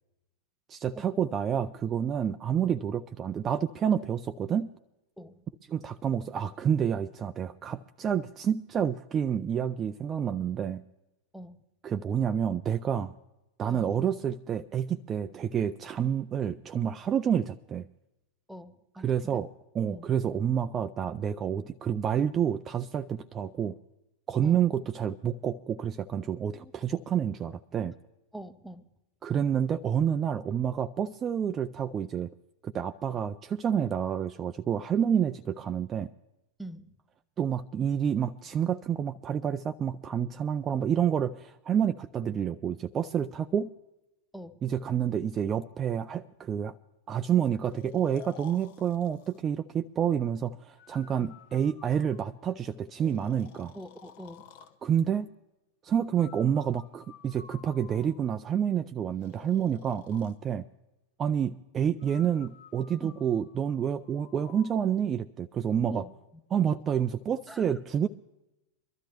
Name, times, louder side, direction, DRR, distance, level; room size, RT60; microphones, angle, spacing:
voice 1, 0.7-4.7 5.7-10.8 11.8-13.1 13.6-17.9 19.0-19.5 19.7-23.8 24.3-27.9 29.2-32.3 32.6-36.1 37.4-43.7 44.6-46.7 47.1-53.7 54.8-55.3 55.8-60.6 61.2-66.0 66.5-68.1, right 8 dB, 25° right, 9 dB, 0.4 m, -29 dB
voice 2, 18.5-19.4 19.9-20.1 24.4-24.6 26.6-26.7 28.3-28.9 36.6-36.9 44.3-44.6 51.2-51.3 53.7-54.5 63.0-63.2 65.9-66.1 67.5-67.8, right 1 dB, ahead, 11 dB, 0.7 m, -44 dB
Breathing, 47.6-49.4 50.8-52.4 53.0-54.8 56.2-58.4 59.2-60.4 62.0-64.8, left 8 dB, 50° left, 0.9 m, -52 dB
23.0 x 13.0 x 3.0 m, 0.96 s
figure-of-eight pair, 90°, 0 cm